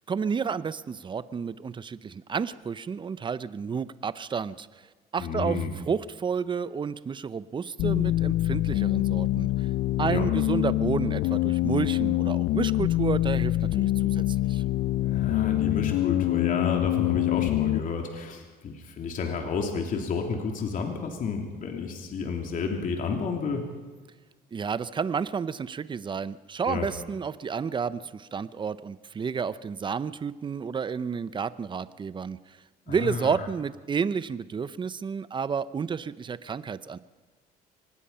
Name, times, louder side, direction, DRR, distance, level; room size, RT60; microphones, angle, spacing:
voice 1, 0.1-4.7 5.1-5.6 5.9-9.7 10.0-14.6 24.5-32.6 32.9-37.0, right 6 dB, 30° right, 15 dB, 0.7 m, -31 dB
voice 2, 5.2-5.7 10.0-10.3 15.0-23.6 26.6-26.9 32.9-33.4, left 5 dB, 50° left, 2 dB, 3.1 m, -31 dB
sound 1, 7.8-17.8, left 16 dB, 75° left, 0.5 m, -25 dB
25.0 x 19.0 x 5.7 m, 1.4 s
cardioid pair, 110°, 17 cm